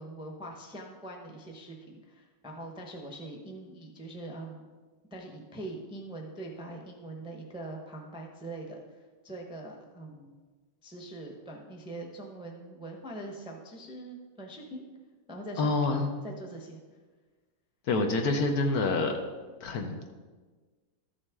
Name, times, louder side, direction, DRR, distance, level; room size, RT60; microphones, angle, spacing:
voice 1, 0.0-4.7 5.1-10.4 10.8-14.8 15.3-16.8, right 2 dB, 5° right, 0 dB, 0.6 m, -43 dB
voice 2, 15.6-16.2 17.9-19.2 19.6-20.1, left 3 dB, 65° left, 4 dB, 1.2 m, -27 dB
13.0 x 6.4 x 3.6 m, 1.4 s
omnidirectional pair, 1.9 m